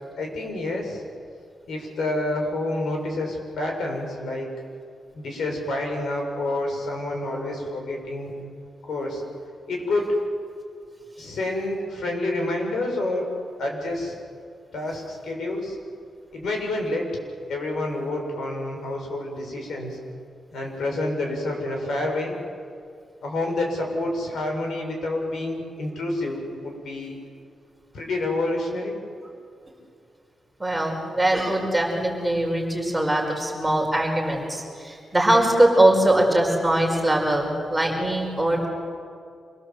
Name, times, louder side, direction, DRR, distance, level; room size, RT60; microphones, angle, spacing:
voice 1, 0.2-1.0 1.7-4.5 5.1-8.3 8.9-9.2 9.7-10.2 11.2-13.3 13.6-14.2 14.7-15.8 16.3-17.1 17.5-20.0 20.5-22.4 23.2-27.1 27.9-28.9, left 2 dB, 80° left, 1 dB, 6.8 m, -28 dB
voice 2, 30.6-38.7, right 1 dB, 5° right, -1 dB, 5.2 m, -21 dB
26.5 x 24.0 x 7.9 m, 2.4 s
wide cardioid pair, 140°, 0 cm